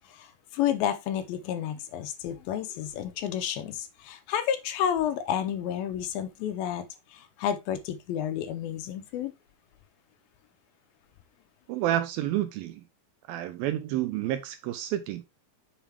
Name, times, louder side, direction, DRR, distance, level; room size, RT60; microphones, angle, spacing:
voice 1, 0.1-6.8 7.1-9.3, left 9 dB, 80° left, 2.6 m, -30 dB
voice 2, 11.7-12.8 13.3-15.2, right 12 dB, 80° right, 2.3 m, -29 dB
7.1 x 4.8 x 3.4 m
omnidirectional pair, 4.3 m